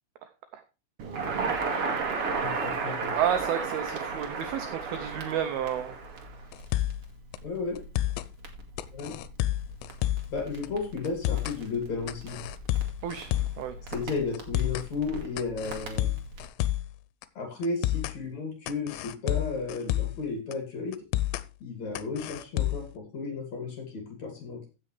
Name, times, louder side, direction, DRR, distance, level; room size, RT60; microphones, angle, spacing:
Crackle, 1.0-16.4, right 4 dB, 55° right, 1.7 m, -35 dB
voice 1, 2.3-3.1 7.4-7.8 8.9-9.1 10.3-12.4 13.9-16.1 17.3-20.9 21.6-24.6, left 4 dB, 45° left, 3 dB, 3.3 m, -33 dB
voice 2, 3.1-6.0 13.0-13.8, right 9 dB, 85° right, 8 dB, 2.2 m, -31 dB
sound 1, 6.5-7.1 7.3-7.4 7.8-8.3 8.8-10.4 10.6-10.7 11.1-11.6 12.1-13.6 13.9-14.0 14.3-14.9 15.4-16.9 17.2-17.3 17.6-18.2 18.7-20.2 20.5-20.6 20.9-21.5 22.0-22.9, left 14 dB, 85° left, 3.0 m, -30 dB
15.5 x 6.7 x 3.2 m, 0.30 s
omnidirectional pair, 5.4 m